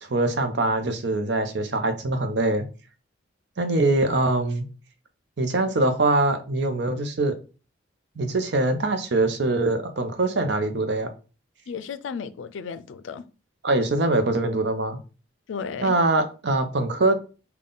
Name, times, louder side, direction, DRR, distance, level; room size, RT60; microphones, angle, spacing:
voice 1, 0.0-2.6 3.6-4.7 5.4-7.3 8.2-11.1 13.6-15.0 15.8-17.2, right 2 dB, 65° right, 0.6 m, -23 dB
voice 2, 11.7-13.2 15.5-15.9, left 6 dB, 85° left, 0.4 m, -34 dB
3.6 x 2.2 x 3.8 m
head